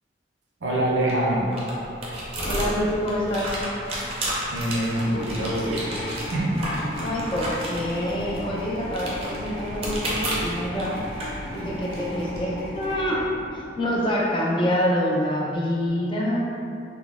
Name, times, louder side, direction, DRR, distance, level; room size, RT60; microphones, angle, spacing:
voice 1, 0.6-1.5 4.5-5.9 6.3-6.6, right 1 dB, 90° right, -4 dB, 0.6 m, -24 dB
sound 1, 0.7-12.4, equal, 35° right, 0.5 m, -33 dB
voice 2, 2.4-3.6 7.0-10.9 11.5-13.2 13.5-16.4, equal, 25° left, -4 dB, 0.4 m, -26 dB
sound 2, 4.8-14.2, equal, 75° left, 1.1 m, -36 dB
3.7 x 2.1 x 2.4 m, 2.5 s
head